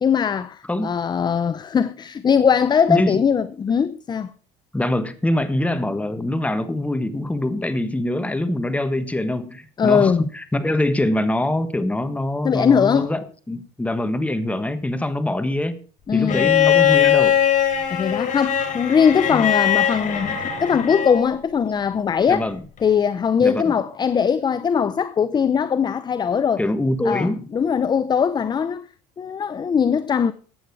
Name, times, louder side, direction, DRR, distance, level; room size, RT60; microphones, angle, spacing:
voice 1, 0.0-4.3 9.8-10.3 12.4-13.1 16.1-16.5 17.9-22.5 22.8-26.6 27.0-28.9 29.2-30.3, left 7 dB, 25° left, 0.6 m, -20 dB
voice 2, 2.9-3.2 4.7-15.8 16.1-17.4 22.3-22.6 23.4-23.7 26.6-27.5, left 1 dB, 10° left, 1.4 m, -24 dB
Bowed string instrument, 16.3-21.3 22.8-22.9, left 10 dB, 50° left, 3.5 m, -20 dB
15.0 x 9.2 x 4.7 m
cardioid pair, 115°, 17 cm